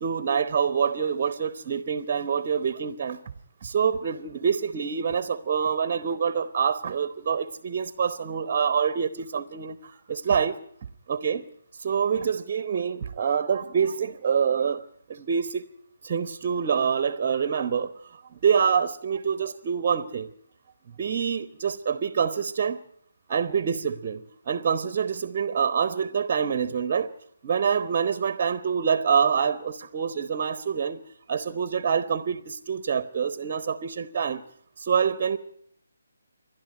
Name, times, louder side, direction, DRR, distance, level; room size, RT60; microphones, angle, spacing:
voice 1, 0.0-3.2 3.6-10.6 11.1-11.4 11.8-14.8 15.1-15.7 16.0-20.3 21.0-22.8 23.3-24.2 24.5-27.1 27.4-31.0 31.3-34.4 34.8-35.4, right 7 dB, 30° right, 1.0 m, -26 dB
28.5 x 12.0 x 9.1 m
figure-of-eight pair, 145°, 0 cm